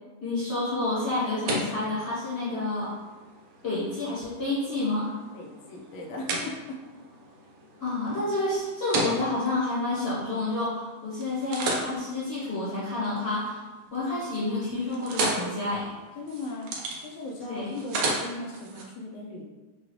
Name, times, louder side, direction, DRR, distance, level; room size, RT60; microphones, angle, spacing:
voice 1, 0.2-2.9 3.6-5.1 7.8-13.6 13.9-16.0 17.4-17.7, left 2 dB, 40° left, -10 dB, 1.1 m, -29 dB
sound 1, 0.8-10.8 11.2-13.5 13.8-14.3 14.6-18.8, right 2 dB, 70° right, 1.1 m, -35 dB
voice 2, 5.3-6.8 16.2-16.7 17.0-19.4, left 2 dB, 70° left, 0 dB, 1.1 m, -38 dB
4.9 x 2.4 x 3.1 m, 1.2 s
omnidirectional pair, 2.4 m